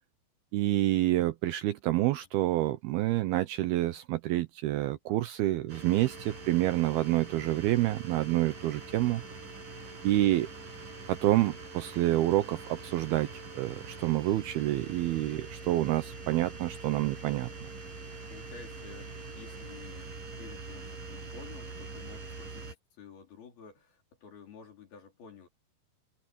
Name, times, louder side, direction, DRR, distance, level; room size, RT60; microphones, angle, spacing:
voice 1, 0.5-9.2 10.0-10.5 11.1-13.3 13.5-17.5, right 15 dB, 75° right, 2.4 m, -28 dB
sound 1, 5.7-22.8, right 3 dB, 50° right, 8.0 m, -44 dB
voice 2, 5.9-6.2 9.8-10.1 17.4-17.7 18.3-20.1 20.4-25.5, left 6 dB, 60° left, 6.0 m, -52 dB
omnidirectional pair, 5.1 m